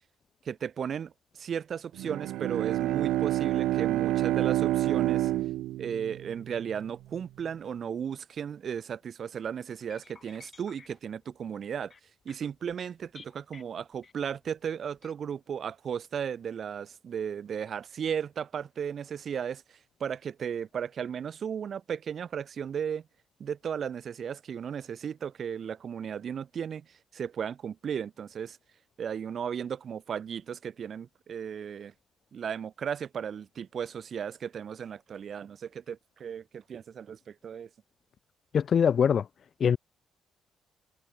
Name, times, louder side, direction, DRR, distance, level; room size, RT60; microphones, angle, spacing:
voice 1, 0.4-5.3 5.8-11.9 12.2-19.6 20.0-23.0 23.4-26.8 27.1-28.6 29.0-31.9 32.3-37.7, right 8 dB, 55° right, 3.2 m, -35 dB
Bowed string instrument, 1.9-6.7, right 15 dB, 90° right, 1.4 m, -28 dB
sound 1, 9.9-14.5 15.0-15.1, left 5 dB, 35° left, 6.4 m, -54 dB
voice 2, 38.5-39.2 39.6-39.8, left 7 dB, 55° left, 1.4 m, -22 dB
cardioid pair, 90°, 0 cm